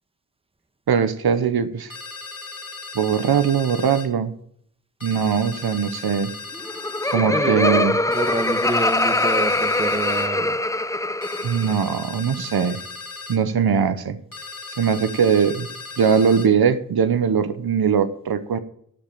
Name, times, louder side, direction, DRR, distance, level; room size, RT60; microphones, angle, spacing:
voice 1, 0.9-1.9 2.9-4.3 5.0-6.3 7.1-8.0 11.4-12.8 13.3-14.2 14.8-15.7 16.0-18.6, right 7 dB, 85° right, 11 dB, 0.9 m, -20 dB
sound 1, 1.9-4.1 5.0-7.2 8.1-10.3 11.2-13.4 14.3-16.5, left 4 dB, 60° left, 2.7 m, -37 dB
Laughter, 6.5-11.8, left 2 dB, 10° left, 0.5 m, -23 dB
voice 2, 7.1-10.6, right 2 dB, 15° right, 9 dB, 1.2 m, -27 dB
12.5 x 5.2 x 8.8 m, 0.66 s
cardioid pair, 55°, 36 cm